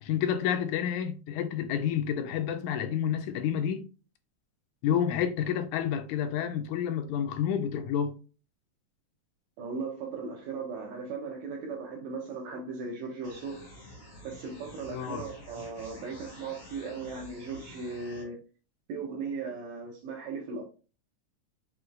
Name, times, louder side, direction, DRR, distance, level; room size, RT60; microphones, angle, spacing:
voice 1, 0.0-3.8 4.8-8.2 14.9-15.3, left 9 dB, 85° left, 2.0 m, -29 dB
voice 2, 9.6-13.7 14.2-18.4 18.9-20.6, right 4 dB, 75° right, 2.0 m, -37 dB
sound 1, 13.2-18.2, equal, 25° left, 0.9 m, -49 dB
6.0 x 2.8 x 2.4 m
omnidirectional pair, 3.5 m